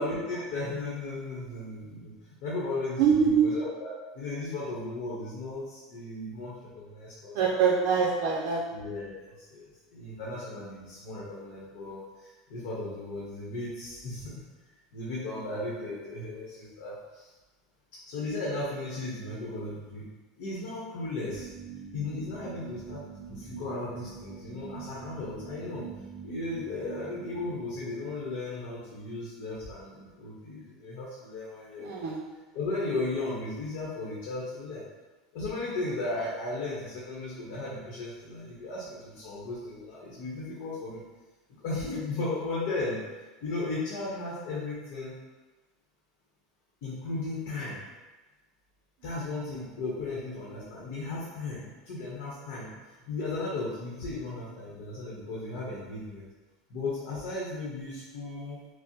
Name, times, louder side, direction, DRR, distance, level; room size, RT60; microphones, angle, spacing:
voice 1, 0.0-7.6 8.7-14.4 14.9-17.3 18.0-20.1 20.4-21.5 21.9-23.0 23.3-25.9 26.2-32.1 32.5-34.8 35.3-41.0 41.6-45.2 46.8-47.8 49.0-52.7 53.1-56.3 56.7-58.8, left 2 dB, 60° left, -6 dB, 1.0 m, -36 dB
voice 2, 3.0-3.5 7.3-8.6 31.8-32.2 49.2-49.3, right 6 dB, 60° right, -3 dB, 0.5 m, -24 dB
sound 1, 21.2-28.3, right 7 dB, 10° right, 0.3 m, -44 dB
5.1 x 2.1 x 3.0 m, 1.2 s
supercardioid pair, 160°, 0 cm